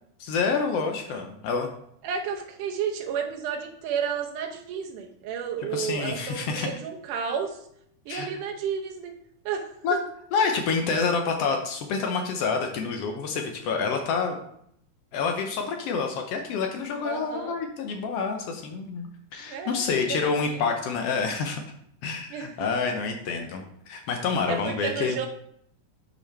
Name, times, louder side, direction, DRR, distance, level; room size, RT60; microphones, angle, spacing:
voice 1, 0.2-1.7 5.6-6.7 8.1-8.3 9.8-10.0 10.3-14.4 15.1-19.1 19.3-21.6 22.0-25.2, left 5 dB, 75° left, 4 dB, 1.4 m, -28 dB
voice 2, 2.0-7.6 8.1-9.1 9.5-10.0 17.0-17.6 19.4-20.6 22.3-22.5 24.5-25.3, right 7 dB, 85° right, 3 dB, 2.4 m, -32 dB
8.9 x 5.1 x 3.3 m, 0.71 s
omnidirectional pair, 3.5 m